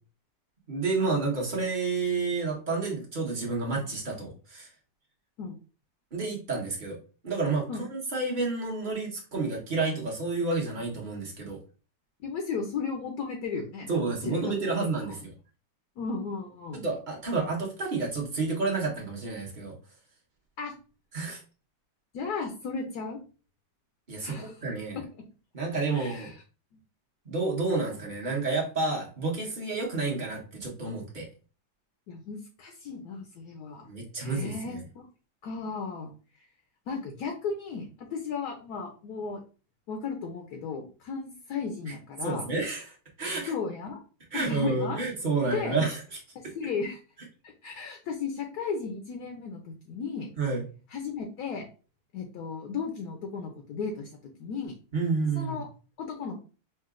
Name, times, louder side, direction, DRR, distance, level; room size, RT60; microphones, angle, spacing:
voice 1, 0.7-4.7 6.1-7.0 7.2-11.6 13.9-15.3 16.7-19.7 21.1-21.4 24.1-25.0 25.5-26.3 27.2-31.3 33.9-34.8 42.2-43.5 44.3-46.0 50.4-50.6 54.9-55.6, right 3 dB, 30° right, -2 dB, 1.1 m, -30 dB
voice 2, 12.2-15.1 16.0-16.9 20.6-20.7 22.1-23.2 24.2-24.6 24.9-25.0 25.9-26.4 26.7-26.8 32.1-33.9 34.2-35.1 35.4-36.1 36.4-36.5 36.9-39.4 39.9-42.5 43.5-44.0 44.3-45.0 45.4-45.8 46.3-47.0 47.4-50.3 50.9-51.7 52.1-54.1 54.4-54.7 55.3-55.7 56.0-56.4, left 5 dB, 70° left, 3 dB, 1.2 m, -35 dB
5.7 x 2.6 x 2.4 m, 0.36 s
omnidirectional pair, 1.9 m